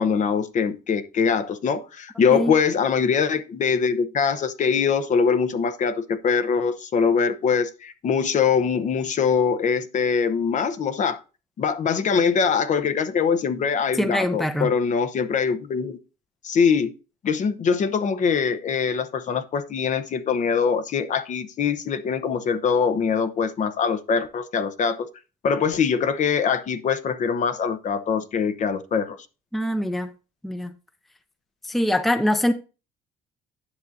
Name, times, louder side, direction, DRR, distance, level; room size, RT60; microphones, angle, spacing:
voice 1, 0.0-11.2 11.6-16.0 16.4-16.9 17.2-25.1 25.4-29.2, left 6 dB, 45° left, 0.8 m, -23 dB
voice 2, 13.9-14.7 29.5-30.1 30.4-30.7 31.6-32.5, equal, ahead, 0.6 m, -23 dB
9.8 x 6.3 x 2.7 m
cardioid pair, 110°, 17 cm